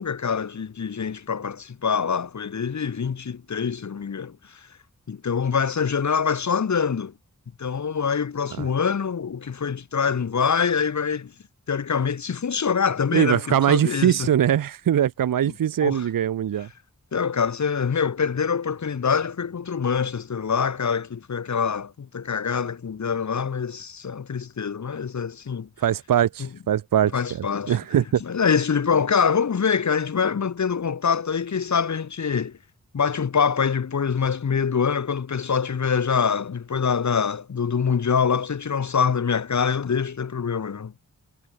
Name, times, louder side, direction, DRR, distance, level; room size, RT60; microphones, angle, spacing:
voice 1, 0.0-4.7 5.1-7.1 7.6-11.3 11.7-14.3 15.4-15.5 15.8-16.1 17.1-25.7 26.4-26.5 27.1-32.6 32.9-40.9, left 6 dB, 55° left, 0.9 m, -25 dB
voice 2, 13.1-16.7 25.8-27.1 27.7-28.2, right 10 dB, 80° right, 0.5 m, -21 dB
wide cardioid pair, 55°, 33 cm